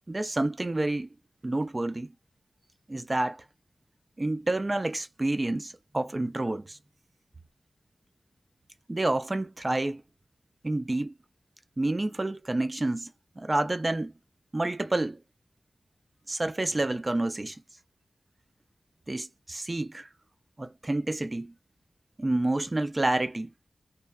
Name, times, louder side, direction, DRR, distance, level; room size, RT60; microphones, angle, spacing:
voice 1, 0.1-1.1 1.4-2.1 2.9-3.4 4.2-6.8 8.9-10.0 10.6-11.1 11.8-14.1 14.5-15.2 16.3-17.6 19.1-20.1 20.6-21.5 22.2-23.5, right 2 dB, 30° right, 0.4 m, -29 dB
2.8 x 2.2 x 2.2 m
wide cardioid pair, 90°, 0 cm